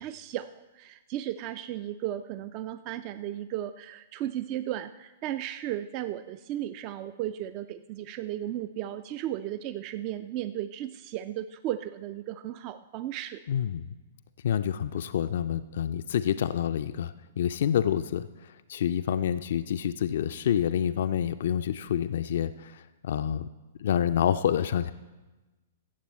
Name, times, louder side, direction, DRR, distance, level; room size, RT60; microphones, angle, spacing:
voice 1, 0.0-13.4, right 12 dB, 35° right, 13 dB, 0.3 m, -35 dB
voice 2, 13.5-13.9 14.4-23.5 23.8-24.9, left 9 dB, 55° left, 12 dB, 0.3 m, -28 dB
16.0 x 7.3 x 4.3 m, 1.2 s
figure-of-eight pair, 110°, 0 cm